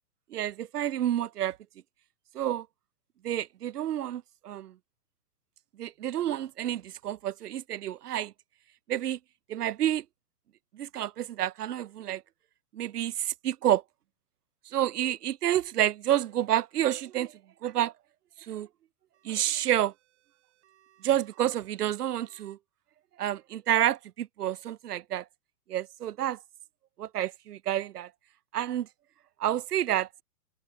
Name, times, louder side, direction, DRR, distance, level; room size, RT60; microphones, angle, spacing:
voice 1, 0.3-1.6 2.3-2.7 3.2-4.7 5.8-8.3 8.9-9.2 9.5-10.0 10.7-12.2 12.7-13.8 14.7-17.9 18.5-18.7 19.2-19.9 21.0-22.6 23.2-25.2 25.7-26.4 27.0-28.1 28.5-28.9 29.4-30.2, right 12 dB, 75° right, 0.9 m, -29 dB
sound 1, 19.1-22.6, right 13 dB, 45° right, 6.4 m, -65 dB
open air
hypercardioid pair, 160°, 46 cm